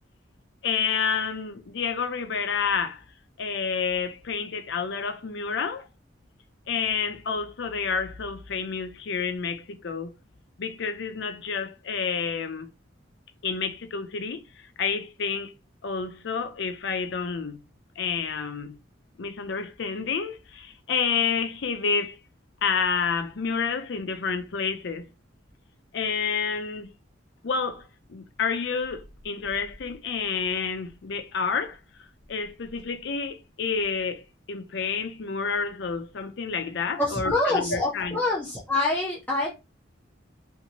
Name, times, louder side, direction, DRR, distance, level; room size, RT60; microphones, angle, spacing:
voice 1, 0.6-3.0 3.4-5.8 6.7-10.1 10.6-12.7 13.4-15.5 15.8-17.6 18.0-18.8 19.2-22.2 22.6-25.1 25.9-26.9 27.4-31.8 32.3-38.2, left 5 dB, 60° left, 0.5 m, -29 dB
voice 2, 37.0-39.5, left 2 dB, 10° left, 0.5 m, -26 dB
2.7 x 2.5 x 2.9 m
head